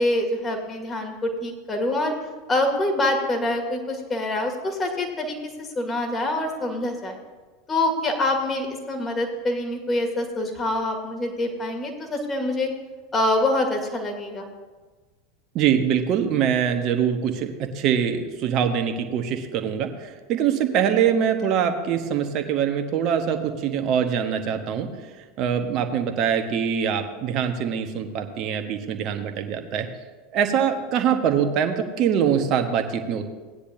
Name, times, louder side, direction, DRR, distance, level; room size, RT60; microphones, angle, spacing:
voice 1, 0.0-2.1 2.5-7.2 7.7-12.7 13.1-14.5, left 1 dB, 25° left, 3 dB, 2.3 m, -25 dB
voice 2, 15.5-24.9 25.4-29.9 30.3-33.3, right 8 dB, 45° right, 6 dB, 1.2 m, -23 dB
17.5 x 9.9 x 2.7 m, 1.3 s
figure-of-eight pair, 80°, 0 cm